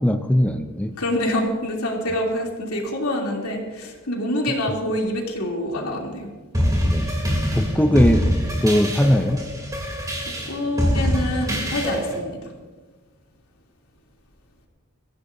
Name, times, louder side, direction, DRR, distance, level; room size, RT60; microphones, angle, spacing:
voice 1, 0.0-0.9 6.9-7.1 7.5-8.3 8.6-9.5, equal, 5° left, 6 dB, 0.6 m, -19 dB
voice 2, 1.0-6.3 7.8-7.9 10.2-12.4, left 1 dB, 90° left, -1 dB, 3.1 m, -26 dB
sound 1, 6.5-12.2, equal, 15° right, 3.1 m, -24 dB
23.0 x 15.5 x 2.7 m, 1.3 s
head